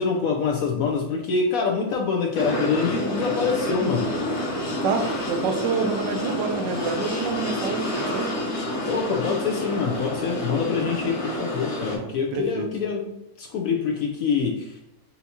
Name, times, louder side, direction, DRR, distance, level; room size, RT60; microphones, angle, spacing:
voice 1, 0.0-4.1 8.9-14.8, left 5 dB, 70° left, 1 dB, 0.8 m, -25 dB
sound 1, 2.3-12.0, left 1 dB, 45° left, 1.2 m, -28 dB
voice 2, 4.8-8.3 12.0-12.7, right 5 dB, 80° right, 4 dB, 1.3 m, -28 dB
5.6 x 2.7 x 2.8 m, 0.81 s
omnidirectional pair, 1.9 m